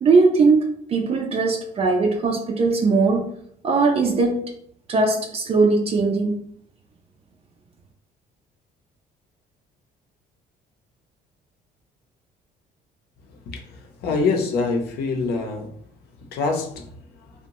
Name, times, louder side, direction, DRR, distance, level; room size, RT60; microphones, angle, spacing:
voice 1, 0.0-3.3 3.6-4.4 4.9-6.4, right 4 dB, 35° right, 2 dB, 0.4 m, -19 dB
voice 2, 13.5-15.7 16.3-16.8, left 4 dB, 70° left, 3 dB, 0.6 m, -25 dB
2.6 x 2.1 x 2.9 m, 0.66 s
cardioid pair, 110°, 17 cm